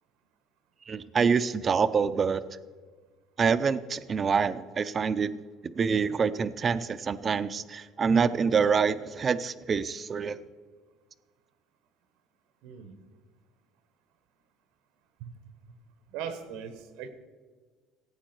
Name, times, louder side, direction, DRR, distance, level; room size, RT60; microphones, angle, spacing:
voice 1, 0.9-2.4 3.4-5.4 5.7-10.4, right 6 dB, 30° right, 14 dB, 0.5 m, -26 dB
voice 2, 12.6-13.0 15.2-15.3 16.1-17.1, right 7 dB, 90° right, 10 dB, 1.3 m, -39 dB
16.0 x 8.8 x 4.5 m, 1.5 s
cardioid pair, 140°, 0 cm